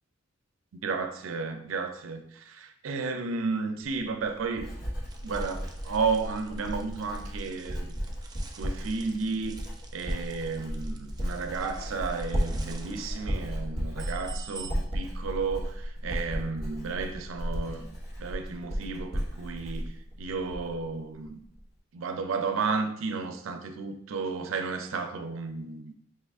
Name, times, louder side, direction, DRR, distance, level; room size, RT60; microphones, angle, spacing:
voice 1, 0.8-4.7 5.2-7.9 8.6-9.6 9.9-17.9 18.2-21.4 21.9-25.9, right 4 dB, 80° right, 6 dB, 0.5 m, -33 dB
Writing, 3.8-20.9 21.2-21.6, equal, 50° left, 1.2 m, -34 dB
sound 1, 5.1-14.7, right 5 dB, 20° right, 0.4 m, -49 dB
4.6 x 2.4 x 3.4 m, 0.70 s
head